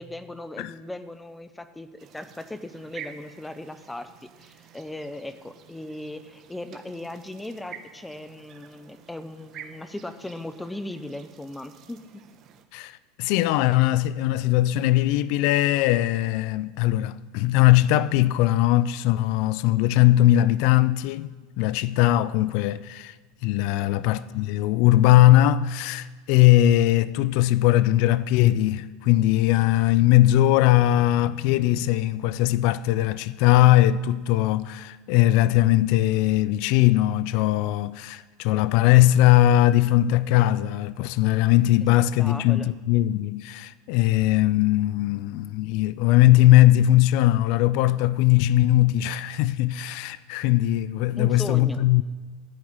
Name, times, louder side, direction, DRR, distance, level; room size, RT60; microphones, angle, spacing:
voice 1, 0.0-1.9 2.1-12.0 23.8-24.0 42.2-42.7 51.2-51.9, left 1 dB, 5° left, 0.8 m, -38 dB
sound 1, 2.0-12.7, right 8 dB, 40° right, 1.0 m, -48 dB
voice 2, 12.7-21.3 21.6-23.2 23.4-52.0, left 15 dB, 60° left, 0.4 m, -20 dB
13.5 x 4.8 x 8.8 m
supercardioid pair, 120°, 0 cm